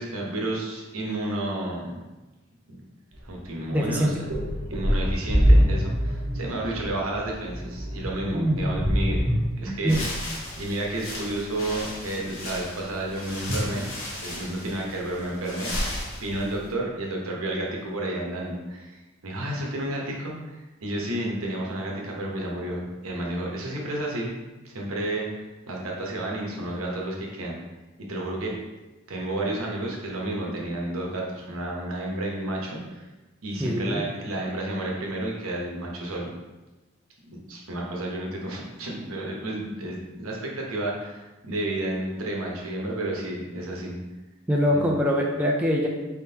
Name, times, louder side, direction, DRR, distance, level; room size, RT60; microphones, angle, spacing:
voice 1, 0.0-1.9 2.7-2.8 3.2-4.1 4.7-9.2 9.6-10.0 10.6-18.9 19.2-24.3 24.6-25.3 25.7-27.6 28.0-28.5 29.1-33.1 33.4-36.3 37.3-44.0 44.7-44.9, right 1 dB, 80° right, -1 dB, 0.9 m, -31 dB
sound 1, 3.1-3.3 3.8-9.4, equal, 55° right, 1.2 m, -24 dB
voice 2, 3.7-4.1 8.3-8.8 9.7-10.0 33.6-34.0 44.5-45.9, equal, 5° right, -2 dB, 0.4 m, -23 dB
sound 2, 9.8-16.7, left 1 dB, 75° left, 1.0 m, -35 dB
4.2 x 3.7 x 2.8 m, 1.1 s
head